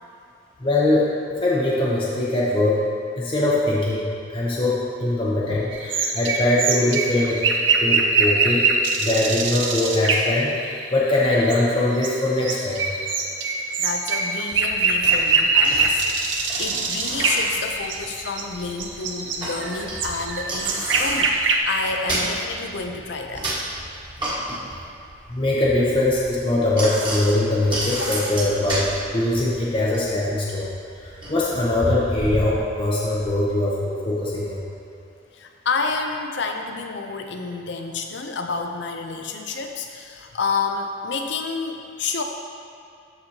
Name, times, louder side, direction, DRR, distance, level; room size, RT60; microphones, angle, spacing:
voice 1, 0.6-2.8 3.2-7.4 7.8-8.7 9.0-12.9 25.3-30.7 31.0-34.6, left 2 dB, 30° left, -6 dB, 0.8 m, -22 dB
sound 1, 5.7-10.9 11.2-18.4 18.7-21.6, right 4 dB, 65° right, 0.6 m, -23 dB
voice 2, 13.8-21.4 21.7-23.5 27.9-28.2 35.3-42.2, left 4 dB, 60° left, 4 dB, 0.6 m, -29 dB
Bicycle, 14.5-33.4, right 1 dB, 25° right, 1.7 m, -32 dB
13.0 x 4.3 x 2.9 m, 2.5 s
head